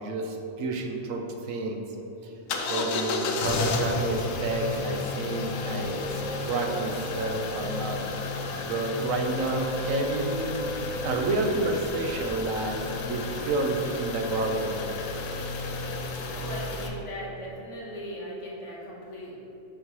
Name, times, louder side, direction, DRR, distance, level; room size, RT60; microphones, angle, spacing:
voice 1, 0.0-1.8 2.7-8.0 8.6-10.7 11.0-14.8, right 2 dB, 80° right, 3 dB, 1.1 m, -30 dB
sound 1, 2.5-16.9, left 3 dB, 80° left, 1.0 m, -32 dB
voice 2, 16.3-19.4, equal, 60° left, -5 dB, 1.6 m, -38 dB
6.5 x 3.1 x 5.9 m, 2.9 s
omnidirectional pair, 1.4 m